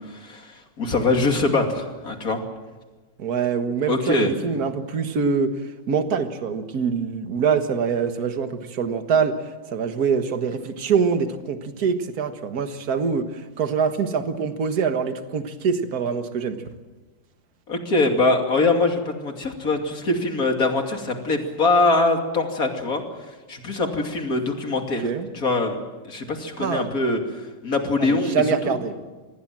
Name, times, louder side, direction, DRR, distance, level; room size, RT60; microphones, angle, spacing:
voice 1, 0.0-2.4 3.9-4.3 17.7-23.0 23.5-25.0 25.3-25.8 26.0-27.2 27.6-28.8, left 3 dB, 40° left, 3 dB, 3.0 m, -23 dB
voice 2, 3.2-5.5 5.9-9.4 9.7-16.6 25.0-25.3 26.6-26.9 28.0-29.0, right 6 dB, 45° right, 7 dB, 1.9 m, -24 dB
26.5 x 20.0 x 7.6 m, 1.3 s
omnidirectional pair, 2.3 m